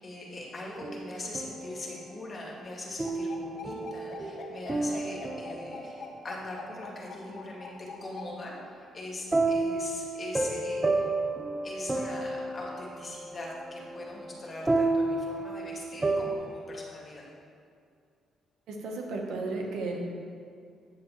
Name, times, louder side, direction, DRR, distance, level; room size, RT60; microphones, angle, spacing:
voice 1, 0.0-11.1 11.6-17.3, left 2 dB, 35° left, -3 dB, 2.1 m, -41 dB
sound 1, 0.7-1.9 3.0-6.2 9.3-16.3, right 2 dB, 20° right, 0.7 m, -31 dB
sound 2, 3.0-8.3, left 5 dB, 50° left, 1.1 m, -43 dB
voice 2, 18.7-20.0, right 3 dB, 80° right, 1 dB, 1.2 m, -34 dB
9.0 x 7.6 x 3.2 m, 2.3 s
cardioid pair, 90°, 0 cm